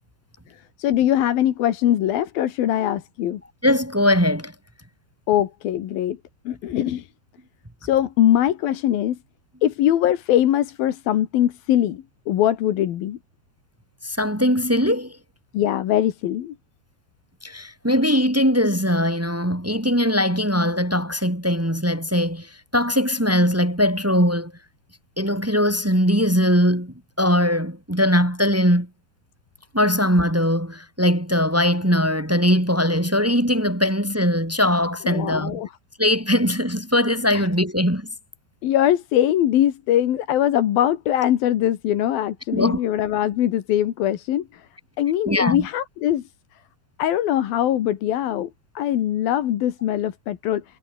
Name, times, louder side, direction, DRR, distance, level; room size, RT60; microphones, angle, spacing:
voice 1, 0.5-3.4 5.3-6.2 6.5-7.1 7.8-9.2 9.6-13.2 15.5-16.5 35.0-35.7 37.3-37.5 38.6-44.7 45.0-46.2 47.0-48.5 48.7-50.6, left 12 dB, 65° left, 3.2 m, -22 dB
voice 2, 3.6-4.5 14.0-15.2 17.4-24.5 25.2-28.9 29.7-35.6 36.0-38.1 42.5-42.8 45.2-45.7, equal, 10° right, 0.9 m, -20 dB
omnidirectional pair, 4.8 m